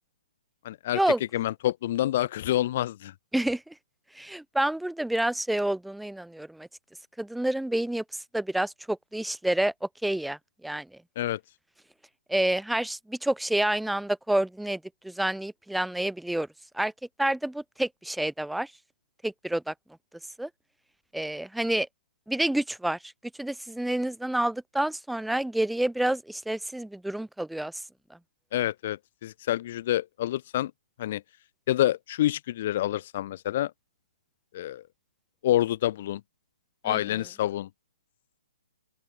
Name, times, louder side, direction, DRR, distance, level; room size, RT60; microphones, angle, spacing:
voice 1, 0.6-3.1 11.2-11.4 28.5-30.7 31.0-31.2 31.7-33.7 34.5-34.8 35.4-36.2 36.8-37.7, left 13 dB, 45° left, 0.7 m, -27 dB
voice 2, 4.2-6.7 7.2-8.0 8.3-9.7 10.0-10.4 10.6-10.8 12.3-14.8 15.0-16.5 16.7-16.9 17.2-18.7 19.2-19.7 20.4-20.5 21.1-21.9 22.3-23.0 23.4-27.7 36.8-37.0, right 1 dB, ahead, 1.6 m, -28 dB
open air
figure-of-eight pair, 130°, 0 cm